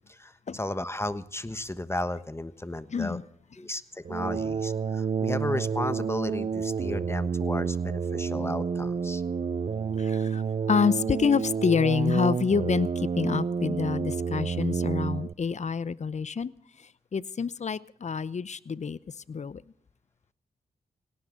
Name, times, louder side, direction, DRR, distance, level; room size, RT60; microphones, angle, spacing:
voice 1, 0.1-3.2 3.6-9.2, left 1 dB, 15° left, 13 dB, 1.2 m, -34 dB
voice 2, 2.9-3.2 10.0-10.4 10.7-16.5 17.1-19.0 19.3-19.6, left 6 dB, 50° left, 19 dB, 0.8 m, -27 dB
sound 1, 4.0-15.3, right 6 dB, 40° right, 0.6 m, -29 dB
18.5 x 17.5 x 3.8 m, 0.66 s
supercardioid pair, 45°, 16 cm